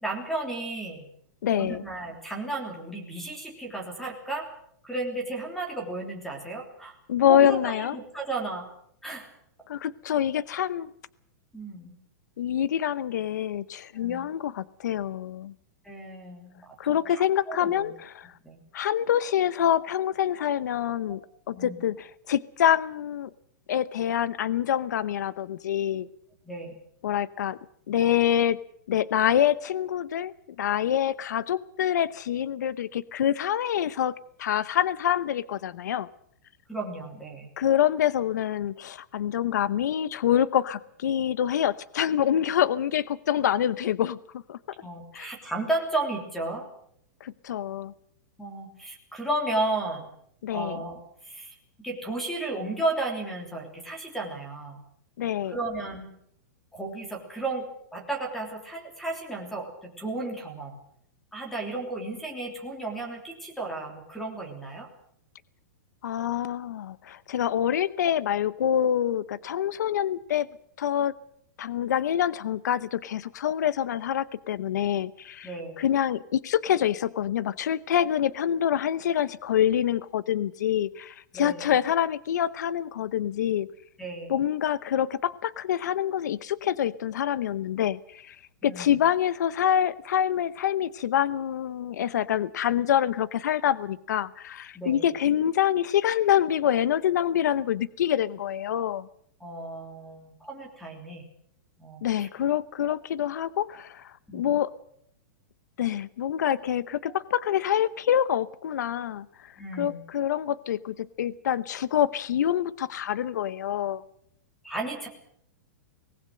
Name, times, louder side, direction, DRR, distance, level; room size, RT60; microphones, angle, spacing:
voice 1, 0.0-1.1 1.5-4.5 4.8-7.0 7.3-8.7 9.0-9.3 11.5-11.9 14.0-14.3 15.8-17.9 18.4-18.6 21.2-21.3 21.5-21.8 26.4-26.7 36.7-37.5 44.8-46.7 48.4-50.1 50.5-51.5 51.8-54.8 55.4-56.1 56.7-60.8 61.3-64.9 75.4-75.8 81.3-81.8 84.0-84.4 88.6-89.0 94.7-95.1 99.4-101.2 101.8-102.3 104.3-104.5 109.6-110.0 114.6-115.1, right 2 dB, ahead, 3 dB, 3.2 m, -34 dB
voice 2, 1.4-1.8 7.1-8.0 9.7-10.9 12.4-15.5 16.8-18.3 18.7-21.2 21.5-23.3 23.7-26.1 27.0-27.6 27.9-28.6 28.9-30.3 30.6-34.1 34.4-36.1 37.6-44.2 44.5-44.6 45.1-45.3 47.2-47.9 50.4-50.8 55.2-55.6 66.0-70.5 70.8-71.1 71.6-83.7 84.3-88.4 88.6-99.1 102.0-104.7 105.8-114.0, left 10 dB, 65° left, 18 dB, 0.8 m, -26 dB
24.5 x 19.0 x 6.6 m, 0.68 s
supercardioid pair, 175°, 10 cm